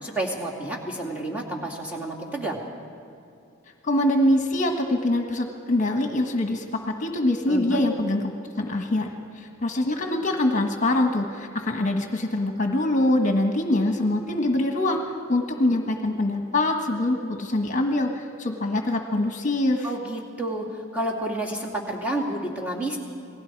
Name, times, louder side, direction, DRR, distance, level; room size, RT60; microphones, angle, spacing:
voice 1, 0.0-2.6 7.5-7.8 19.8-23.0, right 1 dB, 5° right, -4 dB, 2.7 m, -30 dB
voice 2, 3.8-6.6 7.0-8.2 8.6-15.0 15.3-19.9, left 1 dB, 40° left, 3 dB, 1.4 m, -24 dB
28.5 x 19.5 x 4.7 m, 2.6 s
head